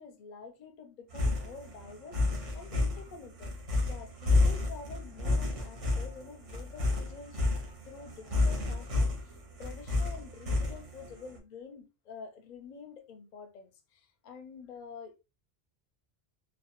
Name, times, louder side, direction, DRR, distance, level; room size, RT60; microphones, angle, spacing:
voice 1, 0.0-2.2 2.5-3.5 3.9-7.4 7.9-9.1 9.6-15.1, left 5 dB, 55° left, 0.6 m, -48 dB
sound 1, 1.1-11.1, left 2 dB, 40° right, 0.6 m, -30 dB
2.1 x 2.1 x 2.8 m
omnidirectional pair, 1.0 m